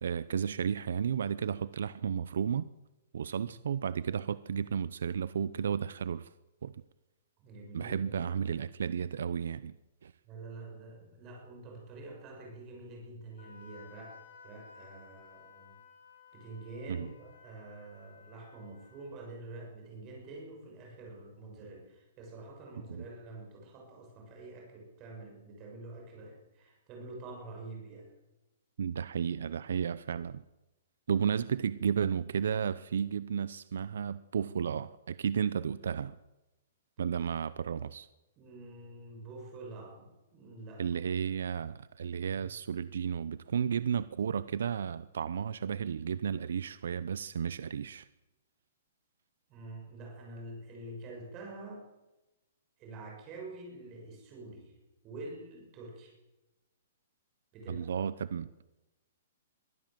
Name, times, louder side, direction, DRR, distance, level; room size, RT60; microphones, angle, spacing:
voice 1, 0.0-2.7 3.1-6.3 6.6-6.7 7.7-9.7 10.0-10.1 16.9-17.1 22.9-23.0 28.8-30.4 31.1-36.1 37.0-38.1 40.8-48.1 57.7-58.6, right 7 dB, 75° right, 16 dB, 0.7 m, -33 dB
voice 2, 7.4-8.1 10.2-14.2 14.4-15.7 16.3-28.1 38.4-40.8 49.5-51.8 52.8-54.7 55.0-56.1 57.5-57.9, right 2 dB, 20° right, 0 dB, 6.8 m, -47 dB
Wind instrument woodwind instrument, 13.4-19.1, left 6 dB, 70° left, 4.5 m, -56 dB
22.5 x 15.5 x 7.7 m, 1.0 s
hypercardioid pair, 175°, 0 cm